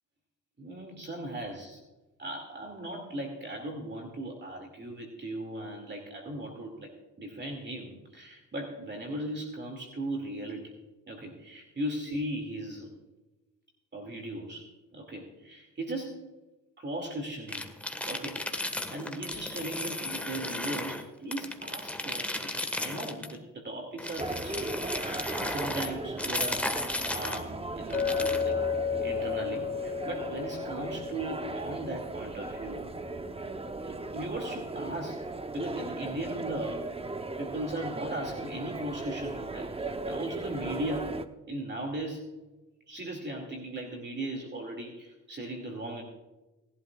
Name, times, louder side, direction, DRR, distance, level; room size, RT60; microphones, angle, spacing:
voice 1, 0.6-1.8 2.2-10.7 11.1-12.9 13.9-16.3 16.8-17.7 18.1-24.8 25.1-32.9 33.8-35.2 35.5-36.9 37.4-41.1 41.5-42.3 42.9-46.0, right 1 dB, 35° right, 2 dB, 2.4 m, -38 dB
sound 1, 17.5-21.0 21.3-23.4 24.0-27.4 27.9-28.5, left 1 dB, 5° left, 1.5 m, -35 dB
sound 2, 24.2-41.2, right 2 dB, 20° right, 0.9 m, -37 dB
Chink clink, 27.9-32.4, left 6 dB, 25° left, 1.8 m, -33 dB
19.5 x 12.0 x 2.4 m, 1.1 s
cardioid pair, 80°, 31 cm